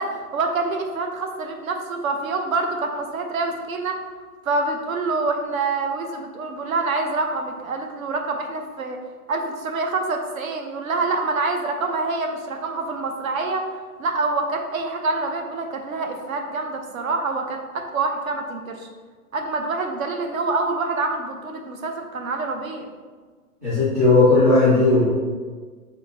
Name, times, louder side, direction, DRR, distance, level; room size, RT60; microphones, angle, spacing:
voice 1, 0.0-4.0 4.5-9.0 9.3-13.7 14.0-18.9 19.3-22.9, right 3 dB, 60° right, 4 dB, 0.7 m, -26 dB
voice 2, 23.6-25.0, left 2 dB, 10° right, -13 dB, 0.5 m, -16 dB
5.3 x 3.5 x 2.9 m, 1.5 s
hypercardioid pair, 160°, 47 cm